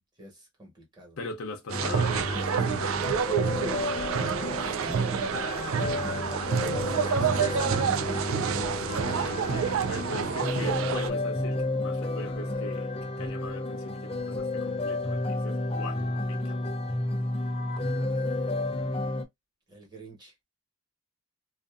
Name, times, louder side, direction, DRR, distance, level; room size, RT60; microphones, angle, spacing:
voice 1, 0.2-1.2 4.5-7.8 17.6-19.0 19.7-20.3, right 2 dB, 20° right, 1.2 m, -44 dB
voice 2, 1.2-3.0 8.8-16.0 16.3-16.8, left 3 dB, 85° left, 0.7 m, -40 dB
sound 1, 1.7-19.2, left 2 dB, 25° left, 0.4 m, -31 dB
sound 2, 1.7-11.1, right 7 dB, 80° right, 0.3 m, -28 dB
2.6 x 2.5 x 2.3 m
head